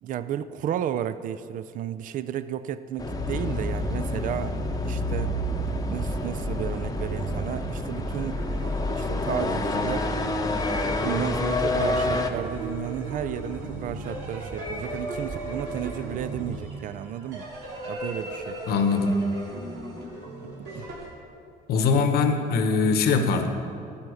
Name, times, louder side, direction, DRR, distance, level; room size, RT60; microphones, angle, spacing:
voice 1, 0.0-4.6 4.8-5.3 5.9-8.4 8.9-10.1 10.8-17.5 17.9-18.6 20.7-20.9, right 10 dB, 50° right, 13 dB, 0.4 m, -33 dB
sound 1, 3.0-12.3, left 2 dB, 20° left, 0.8 m, -28 dB
sound 2, 3.0-16.6, right 3 dB, 35° right, 1.5 m, -37 dB
sound 3, 8.3-21.1, right 1 dB, 85° right, 2.7 m, -37 dB
voice 2, 18.7-19.2 21.7-23.5, left 4 dB, 65° left, 7 dB, 0.9 m, -22 dB
14.0 x 5.6 x 6.4 m, 2.5 s
cardioid pair, 110°, 17 cm